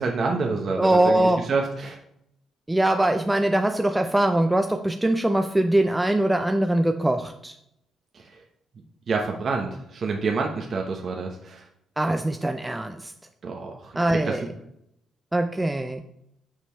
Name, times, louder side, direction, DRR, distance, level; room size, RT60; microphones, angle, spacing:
voice 1, 0.0-2.0 8.1-8.4 9.1-11.6 13.4-14.5, right 4 dB, 50° right, 1 dB, 1.0 m, -28 dB
voice 2, 0.8-1.5 2.7-7.5 12.0-13.1 14.0-14.4 15.3-16.0, right 1 dB, 10° right, 6 dB, 0.5 m, -22 dB
6.7 x 5.2 x 4.5 m, 0.75 s
cardioid pair, 90°, 0 cm